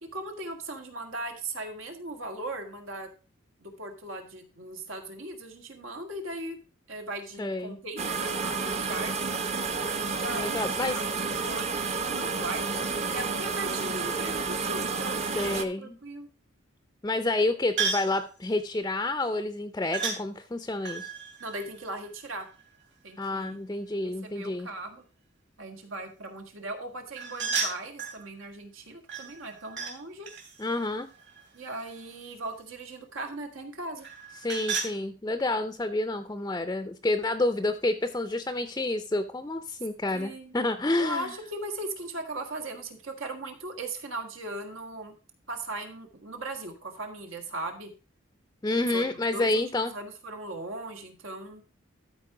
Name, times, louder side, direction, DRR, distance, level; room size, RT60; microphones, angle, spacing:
voice 1, 0.0-3.1 3.6-6.6 6.9-9.1 10.2-11.1 11.4-16.3 21.4-22.5 23.0-23.6 24.0-25.0 25.6-30.3 31.5-34.1 40.1-40.5 41.0-45.1 45.5-47.9 48.8-49.6 49.9-51.6, right 2 dB, 90° right, 4 dB, 1.9 m, -38 dB
voice 2, 7.4-7.8 10.3-11.0 15.3-16.0 17.0-21.1 23.2-24.7 30.6-31.1 34.4-41.3 48.6-49.9, left 2 dB, 15° left, 9 dB, 0.4 m, -29 dB
sound 1, 8.0-15.6, right 4 dB, 35° right, 0.7 m, -30 dB
sound 2, 17.8-18.2 19.9-20.2 20.8-22.6 27.2-28.2 29.1-30.0 30.3-32.2 34.0-34.9, right 5 dB, 60° right, 2.6 m, -34 dB
13.0 x 4.5 x 4.9 m, 0.36 s
head